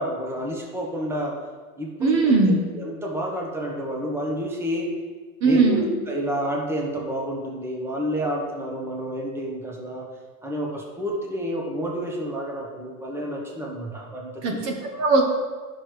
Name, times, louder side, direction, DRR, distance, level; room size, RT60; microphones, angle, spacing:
voice 1, 0.0-1.3 1.8-2.4 2.8-4.9 5.4-10.1 10.4-14.6, equal, 5° right, -1 dB, 1.2 m, -29 dB
voice 2, 2.0-2.6 5.4-5.9 14.4-15.2, right 3 dB, 35° right, 2 dB, 1.1 m, -19 dB
9.9 x 6.3 x 3.3 m, 1.4 s
supercardioid pair, 120°, 45 cm